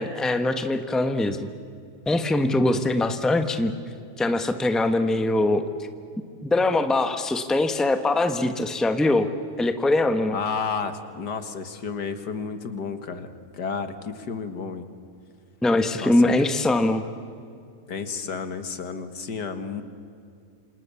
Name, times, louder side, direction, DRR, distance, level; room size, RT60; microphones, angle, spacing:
voice 1, 0.0-1.5 2.1-3.7 4.2-5.6 6.4-9.3 9.6-10.4 15.6-17.0, left 2 dB, ahead, 8 dB, 1.1 m, -22 dB
voice 2, 2.6-3.0 10.3-14.8 16.0-16.3 17.9-19.8, left 5 dB, 80° left, 9 dB, 2.3 m, -32 dB
28.0 x 27.0 x 7.2 m, 2.4 s
omnidirectional pair, 1.8 m